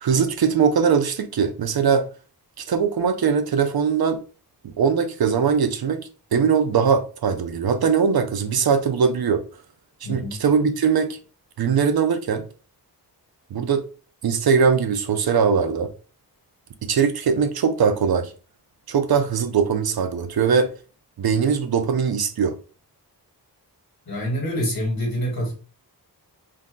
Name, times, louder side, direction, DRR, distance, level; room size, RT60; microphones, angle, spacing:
voice 1, 0.0-2.1 2.6-4.2 4.6-9.4 10.1-11.2 11.6-12.4 13.5-13.8 14.2-15.9 16.8-18.3 18.9-20.7 21.2-22.6, right 6 dB, 65° right, 0.5 m, -21 dB
voice 2, 24.1-25.5, equal, 60° left, 1.6 m, -26 dB
2.7 x 2.2 x 3.7 m
wide cardioid pair, 110°, 40 cm